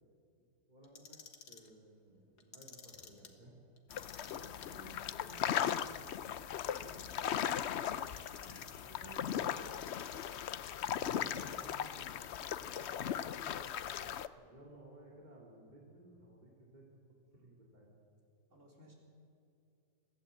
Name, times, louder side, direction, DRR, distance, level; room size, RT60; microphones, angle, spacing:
voice 1, 0.4-1.2 1.5-3.6 10.9-12.2 14.4-17.1 17.4-17.9, right 1 dB, 25° right, -3 dB, 3.1 m, -57 dB
Clock, 0.8-1.7 2.4-3.3 3.8-4.7 5.2-6.1 6.6-7.5 8.0-8.9 9.4-10.4 11.1-12.0 12.6-13.2, left 6 dB, 70° left, 2.0 m, -54 dB
sound 1, 3.9-14.3, left 9 dB, 85° left, 0.5 m, -38 dB
voice 2, 4.2-10.0 12.7-13.7 17.3-17.4 18.5-18.9, right 1 dB, 45° right, -1 dB, 4.3 m, -58 dB
22.0 x 15.5 x 8.4 m, 2.4 s
omnidirectional pair, 1.9 m